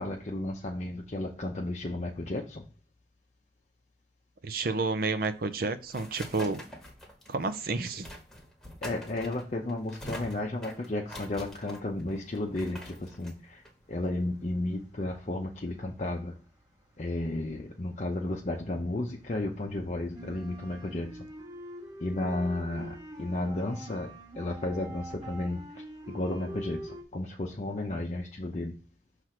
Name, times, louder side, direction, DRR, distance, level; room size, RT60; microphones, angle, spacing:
voice 1, 0.0-2.6 8.8-16.3 17.0-21.3 22.0-28.8, left 1 dB, 40° left, 0.6 m, -33 dB
voice 2, 4.4-6.6 7.3-8.1, right 3 dB, 55° right, 0.6 m, -30 dB
sound 1, 5.3-14.6, equal, ahead, 1.2 m, -46 dB
sound 2, 14.4-15.3 15.6-18.5 18.8-27.0, right 1 dB, 20° right, 0.9 m, -45 dB
6.1 x 3.3 x 5.8 m
head